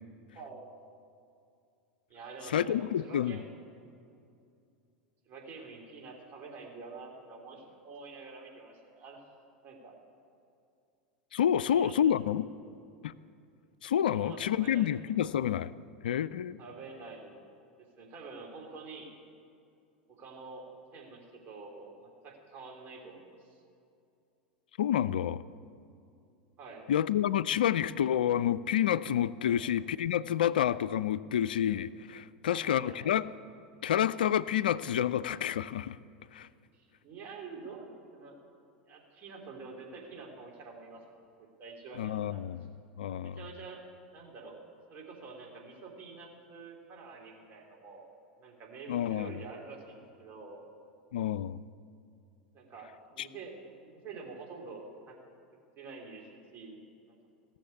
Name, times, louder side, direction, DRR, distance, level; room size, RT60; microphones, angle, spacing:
voice 1, 0.3-0.7 2.1-3.5 3.7-3.9 5.3-9.2 9.6-9.9 11.6-12.4 14.1-14.9 16.6-17.4 18.0-19.2 20.1-23.6 26.6-26.9 29.5-29.7 32.4-33.1 36.7-38.4 38.9-42.4 43.2-43.8 44.1-44.6 44.9-48.1 48.4-50.6 52.5-55.2 55.8-57.2, right 4 dB, 40° right, 0 dB, 3.3 m, -47 dB
voice 2, 2.5-3.4 11.3-12.5 13.0-13.1 13.8-15.7 16.0-16.6 24.8-25.4 26.9-33.3 33.8-36.0 36.3-36.5 42.0-42.7 43.0-43.4 48.9-49.3 51.1-51.6 53.2-53.3, left 10 dB, 75° left, 17 dB, 0.3 m, -29 dB
17.0 x 7.2 x 9.7 m, 2.5 s
hypercardioid pair, 85°, 5 cm